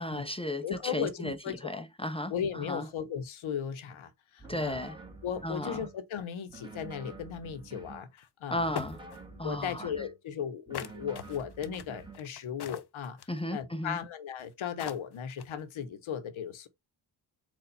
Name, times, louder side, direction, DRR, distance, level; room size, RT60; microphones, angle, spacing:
voice 1, 0.0-1.4 1.6-2.9 4.5-5.0 5.4-5.9 8.5-9.0 9.4-9.9 13.3-14.0, left 1 dB, 10° left, 0.6 m, -34 dB
voice 2, 0.6-1.8 2.3-4.8 5.2-8.7 9.4-13.2 13.5-16.7, left 8 dB, 75° left, 1.0 m, -36 dB
sound 1, 4.4-6.0 6.5-8.1 8.6-10.2 10.7-12.2, right 3 dB, 10° right, 1.7 m, -48 dB
sound 2, 8.2-8.3 8.8-9.2 10.7-13.4 14.4-14.5 14.8-15.6, left 9 dB, 55° left, 0.6 m, -40 dB
4.4 x 2.6 x 4.1 m
cardioid pair, 50°, 48 cm